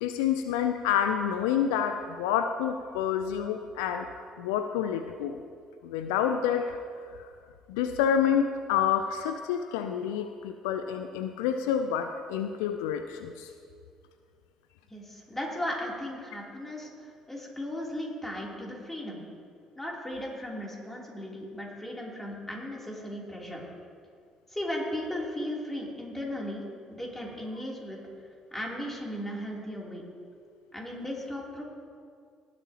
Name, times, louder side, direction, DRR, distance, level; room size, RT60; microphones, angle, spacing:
voice 1, 0.0-4.1 4.4-5.4 5.8-6.8 7.7-13.5, left 8 dB, 75° left, 8 dB, 0.4 m, -28 dB
voice 2, 14.9-19.2 19.8-23.6 24.5-26.6 26.9-28.0 28.5-30.0 30.7-31.6, left 1 dB, 15° left, -3 dB, 3.1 m, -36 dB
18.0 x 8.4 x 2.9 m, 2.2 s
hypercardioid pair, 50°, 2 cm